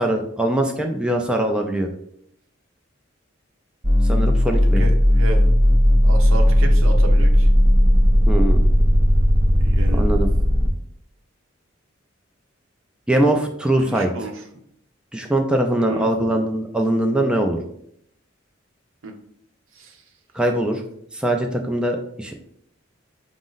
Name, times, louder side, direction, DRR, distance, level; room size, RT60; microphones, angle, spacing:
voice 1, 0.0-1.9 4.0-4.9 8.3-8.6 9.9-10.3 13.1-14.1 15.1-17.6 20.3-20.8 21.1-22.3, right 1 dB, 5° right, 2 dB, 0.3 m, -22 dB
sound 1, 3.8-10.7, equal, 25° right, 0.7 m, -16 dB
voice 2, 4.8-5.6 6.0-7.5 9.6-10.1 13.8-14.4 15.8-16.1 19.0-19.1 19.7-20.0, right 2 dB, 80° right, 4 dB, 0.6 m, -32 dB
5.0 x 2.1 x 3.8 m, 0.71 s
head